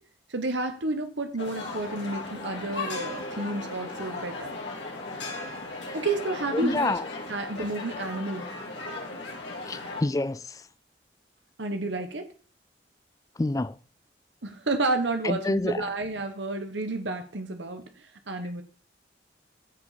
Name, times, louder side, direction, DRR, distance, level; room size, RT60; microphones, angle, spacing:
voice 1, 0.3-4.6 5.9-6.9 7.3-8.5 11.6-12.3 14.4-18.6, right 2 dB, 85° right, 1.2 m, -31 dB
sound 1, 1.4-10.0, left 3 dB, 80° left, 3.1 m, -36 dB
voice 2, 6.5-7.0 9.7-10.6 13.4-13.8 15.2-15.9, left 2 dB, 20° left, 0.4 m, -27 dB
14.5 x 5.1 x 4.1 m
head